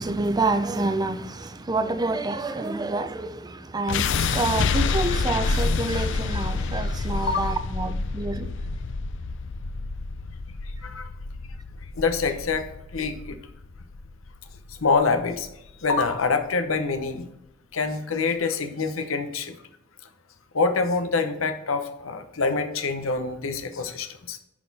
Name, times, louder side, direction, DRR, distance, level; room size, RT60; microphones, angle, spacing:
voice 1, 0.0-8.5, right 2 dB, 20° right, 0.5 m, -28 dB
sound 1, 3.9-15.9, left 4 dB, 65° left, 0.5 m, -28 dB
voice 2, 12.0-13.4 14.7-15.5 15.8-17.3 17.7-19.6 20.5-24.4, left 4 dB, 90° left, 1.0 m, -25 dB
11.0 x 4.2 x 4.1 m
head